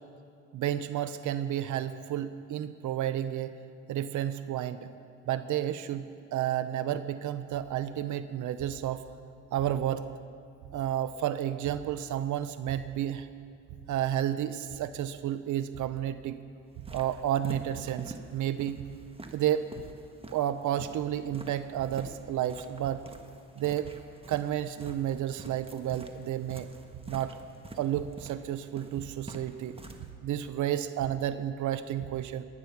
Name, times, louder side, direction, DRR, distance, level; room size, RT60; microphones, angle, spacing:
voice 1, 0.5-3.5 3.9-4.9 5.3-9.0 9.5-10.0 10.7-13.3 13.9-16.4 16.9-18.8 19.3-19.7 20.3-23.0 23.6-23.9 24.3-26.7 27.1-27.4 27.8-29.8 30.2-32.4, right 11 dB, 75° right, 12 dB, 0.7 m, -31 dB
sound 1, 16.7-30.1, right 2 dB, 20° right, 1.4 m, -47 dB
22.5 x 9.6 x 5.9 m, 2.3 s
cardioid pair, 90°, 30 cm